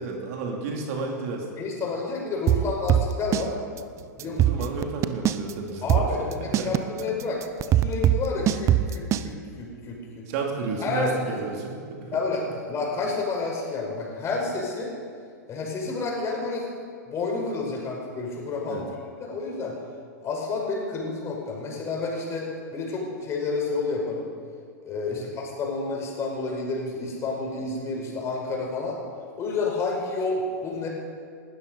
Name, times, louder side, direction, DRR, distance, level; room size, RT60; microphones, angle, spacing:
voice 1, 0.0-1.5 4.2-7.1 10.3-12.2 18.6-18.8 25.2-25.3, right 4 dB, 55° right, 1 dB, 2.8 m, -32 dB
voice 2, 1.6-3.5 4.2-4.6 5.8-6.4 6.6-7.4 7.8-10.3 10.8-11.1 12.1-12.4 12.7-14.9 15.5-16.7 17.1-18.9 19.2-19.7 20.2-24.3 24.8-29.0 29.3-30.9, left 3 dB, 30° left, -1 dB, 5.5 m, -30 dB
sound 1, 2.5-3.5 3.8-3.9 4.2-5.5 5.9-9.3, right 12 dB, 30° right, 0.7 m, -21 dB
20.0 x 12.5 x 5.4 m, 2.1 s
hypercardioid pair, 110°, 9 cm